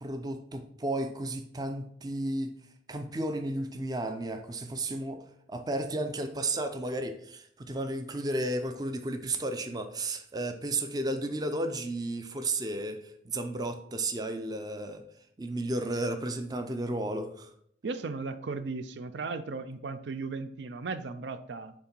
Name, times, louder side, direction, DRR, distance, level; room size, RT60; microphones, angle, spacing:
voice 1, 0.0-2.5 2.9-13.0 13.2-15.0 15.4-17.5, right 2 dB, 20° right, 7 dB, 0.5 m, -33 dB
voice 2, 17.8-21.7, right 4 dB, 75° right, 11 dB, 0.4 m, -36 dB
7.6 x 3.5 x 4.4 m, 0.68 s
head